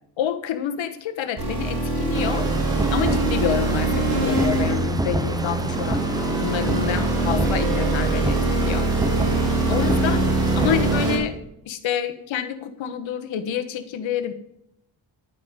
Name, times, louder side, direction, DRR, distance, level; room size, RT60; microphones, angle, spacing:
voice 1, 0.2-2.5 2.9-6.0 6.4-8.9 9.7-10.2 10.6-11.4 11.6-14.3, left 9 dB, 70° left, 8 dB, 1.3 m, -28 dB
sound 1, 1.4-11.2, right 2 dB, 55° right, 5.3 m, -23 dB
sound 2, 2.1-11.1, right 2 dB, 10° right, 0.5 m, -28 dB
10.5 x 9.1 x 5.4 m, 0.79 s
wide cardioid pair, 160°, 48 cm